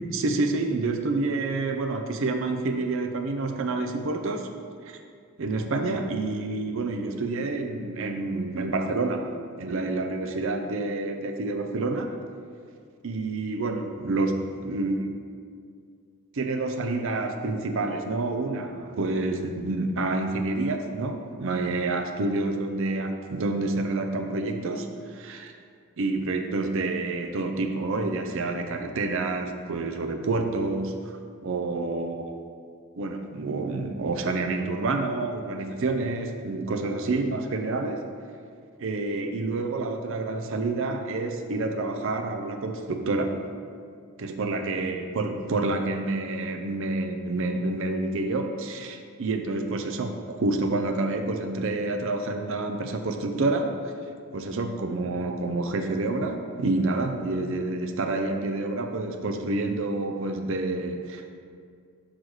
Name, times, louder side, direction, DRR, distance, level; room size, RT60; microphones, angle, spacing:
voice 1, 0.0-4.5 4.8-5.0 5.4-9.3 9.6-12.2 13.0-15.1 16.3-25.5 26.0-32.4 32.9-38.0 38.8-43.4 44.2-53.9 54.3-61.3, right 2 dB, 60° right, 6 dB, 0.5 m, -28 dB
6.2 x 4.0 x 4.8 m, 2.2 s
head